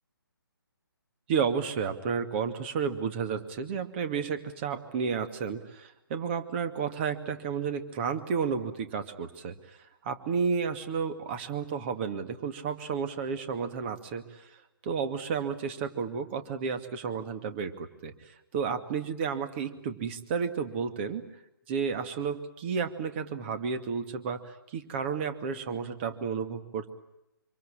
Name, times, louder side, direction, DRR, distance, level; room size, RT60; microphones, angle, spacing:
voice 1, 1.3-9.6 10.0-14.4 14.8-18.1 18.5-21.3 21.7-26.9, right 6 dB, 30° right, 8 dB, 2.3 m, -32 dB
26.0 x 25.5 x 8.9 m, 0.86 s
figure-of-eight pair, 140°, 12 cm